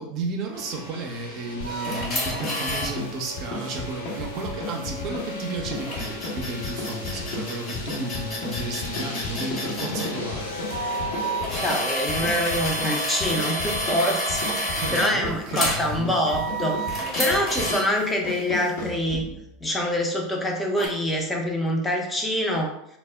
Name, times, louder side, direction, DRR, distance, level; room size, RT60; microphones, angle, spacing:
voice 1, 0.0-10.5 14.5-16.2 19.1-19.4, right 3 dB, 50° right, 2 dB, 0.5 m, -33 dB
sound 1, 0.5-11.7, left 2 dB, 85° left, 0.5 m, -37 dB
sound 2, 1.6-19.4, left 3 dB, 60° left, 0.9 m, -35 dB
sound 3, 1.6-2.9 5.9-10.1 10.7-15.1 15.6-15.8 16.3-17.8 20.8-20.9, equal, 35° left, 1.0 m, -29 dB
voice 2, 11.6-14.4 14.7-19.3 19.6-22.7, equal, 10° left, 1 dB, 0.5 m, -25 dB
2.1 x 2.0 x 3.3 m, 0.76 s
hypercardioid pair, 85°, 0 cm